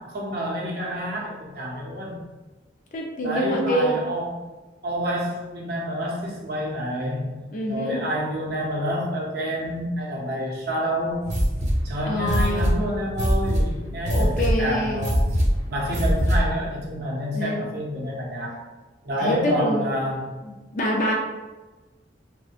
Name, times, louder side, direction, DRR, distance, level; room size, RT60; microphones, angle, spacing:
voice 1, 0.0-2.2 3.2-4.4 4.8-7.4 7.7-11.2 11.8-15.2 15.7-18.6 19.0-20.3, equal, 60° right, -2 dB, 0.6 m, -28 dB
voice 2, 2.9-4.0 7.5-8.0 12.1-12.7 14.1-15.1 17.3-17.6 19.2-19.9 20.7-21.1, equal, 45° left, 0 dB, 0.4 m, -25 dB
sound 1, 11.2-16.6, equal, 40° right, 0.9 m, -23 dB
2.6 x 2.1 x 2.4 m, 1.2 s
head